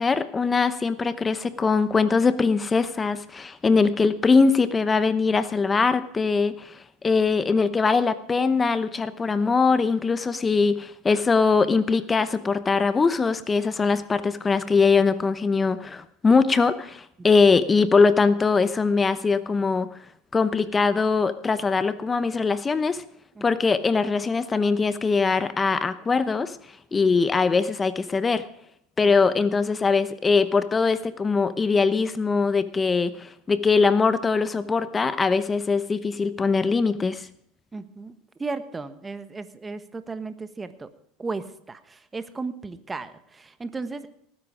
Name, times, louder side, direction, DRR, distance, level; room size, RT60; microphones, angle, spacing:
voice 1, 0.0-19.9 20.3-23.0 23.4-26.6 26.9-28.4 29.0-37.3, left 4 dB, 20° left, 14 dB, 0.9 m, -22 dB
voice 2, 37.7-40.9 41.2-44.1, right 3 dB, 20° right, 12 dB, 1.3 m, -35 dB
18.5 x 10.0 x 5.1 m, 0.71 s
hypercardioid pair, 85°, 0 cm